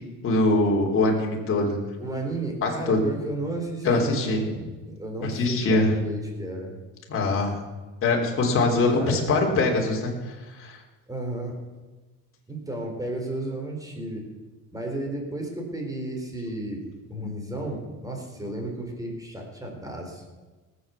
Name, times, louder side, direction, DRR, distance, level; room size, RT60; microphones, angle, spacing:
voice 1, 0.2-1.8 2.6-3.0 3.8-4.4 5.2-5.9 7.1-7.6 8.0-10.8, left 2 dB, 45° left, 0 dB, 3.4 m, -23 dB
voice 2, 2.0-6.8 9.0-9.2 11.1-11.6 12.5-14.3 14.7-16.8 17.1-20.2, right 2 dB, 10° right, 2 dB, 3.9 m, -33 dB
18.5 x 8.1 x 7.0 m, 1.3 s
cardioid pair, 125°, 31 cm